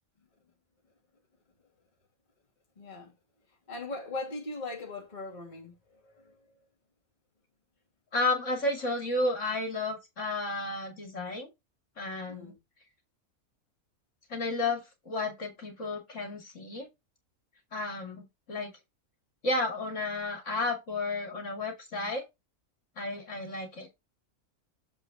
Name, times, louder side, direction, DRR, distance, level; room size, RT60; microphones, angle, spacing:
voice 1, 2.8-3.1 3.5-6.7 12.3-12.6, left 2 dB, 30° left, 2.3 m, -40 dB
voice 2, 8.1-11.5 12.0-12.5 14.3-16.9 17.7-18.7 19.4-22.2 23.0-23.9, left 2 dB, 60° left, 2.7 m, -32 dB
7.3 x 4.6 x 4.1 m
omnidirectional pair, 1.5 m